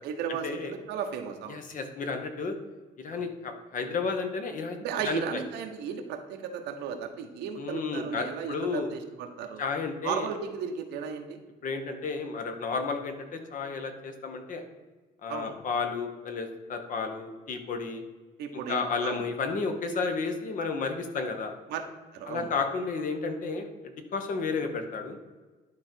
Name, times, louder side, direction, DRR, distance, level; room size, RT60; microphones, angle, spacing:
voice 1, 0.0-1.6 3.1-3.3 4.8-9.6 10.0-11.4 15.3-15.6 18.4-19.3 21.7-21.8 22.1-22.5, right 7 dB, 85° right, 5 dB, 1.1 m, -35 dB
voice 2, 1.5-2.6 3.0-4.8 5.0-5.4 7.6-8.9 9.6-10.3 11.6-14.6 15.2-18.0 18.7-21.5 22.3-25.2, left 4 dB, 50° left, 6 dB, 1.3 m, -32 dB
11.0 x 3.9 x 4.5 m, 1.3 s
cardioid pair, 110°, 17 cm